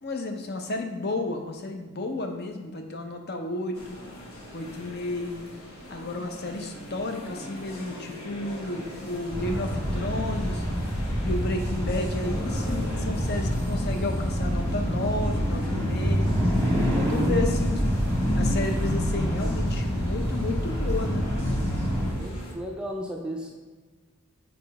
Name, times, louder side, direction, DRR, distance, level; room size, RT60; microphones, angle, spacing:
voice 1, 0.0-4.0 4.5-5.5 5.9-10.6 11.2-16.3 16.8-17.9 18.3-21.3, left 2 dB, 50° left, 4 dB, 0.6 m, -32 dB
sound 1, 3.7-22.5, left 1 dB, 80° left, 1.2 m, -42 dB
sound 2, 9.3-22.1, equal, 10° left, 1.4 m, -26 dB
voice 2, 21.9-23.5, equal, 5° right, 0 dB, 0.4 m, -35 dB
4.9 x 4.0 x 4.7 m, 1.3 s
head